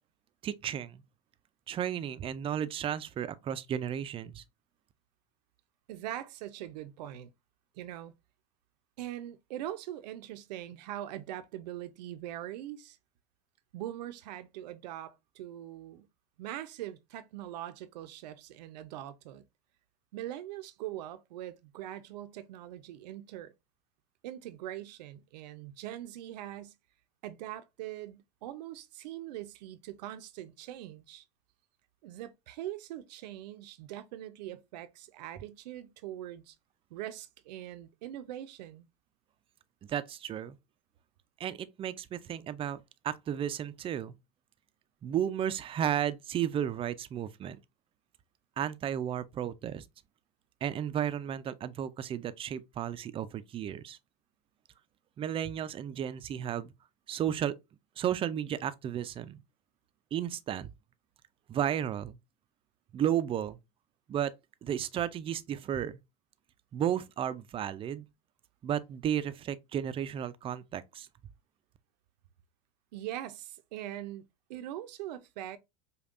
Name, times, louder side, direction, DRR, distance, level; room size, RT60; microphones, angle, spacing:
voice 1, 0.4-1.0 1.7-4.4 39.9-40.6 41.4-44.1 45.0-47.6 48.6-49.8 50.6-54.0 55.2-56.7 57.1-57.6 58.0-59.4 60.1-60.7 61.5-62.2 62.9-63.6 64.1-64.3 64.6-66.0 66.7-68.1 68.6-71.1, right 10 dB, 25° right, 0.4 m, -33 dB
voice 2, 5.9-7.3 7.8-8.1 9.0-13.0 13.7-16.1 16.4-19.5 20.1-23.5 24.2-26.8 27.2-31.2 32.0-36.6 36.9-38.9 72.9-74.2 74.5-75.6, right 13 dB, 80° right, 0.5 m, -42 dB
5.2 x 2.3 x 2.4 m
supercardioid pair, 110°, 21 cm